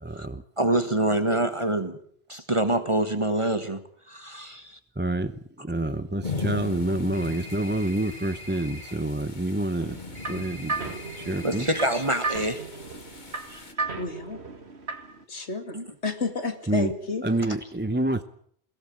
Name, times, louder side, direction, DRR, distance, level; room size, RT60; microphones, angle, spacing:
voice 1, 0.0-0.4 1.1-1.2 4.9-10.0 10.2-11.7 16.7-16.9 17.2-18.2, right 1 dB, 10° right, 11 dB, 0.7 m, -28 dB
voice 2, 0.6-2.0 2.3-3.8 4.1-4.8 11.4-12.7 13.5-13.6 15.7-15.8, right 1 dB, 30° right, 9 dB, 1.6 m, -26 dB
sound 1, 6.2-13.7, left 4 dB, 45° left, 1.8 m, -39 dB
sound 2, 7.1-8.9 10.2-12.5, left 1 dB, 20° left, 5.0 m, -44 dB
sound 3, 9.8-15.2, right 3 dB, 75° right, 2.2 m, -35 dB
voice 3, 14.0-14.4 15.3-17.2, left 3 dB, 85° left, 8 dB, 2.7 m, -31 dB
22.5 x 17.0 x 8.9 m, 0.65 s
omnidirectional pair, 1.1 m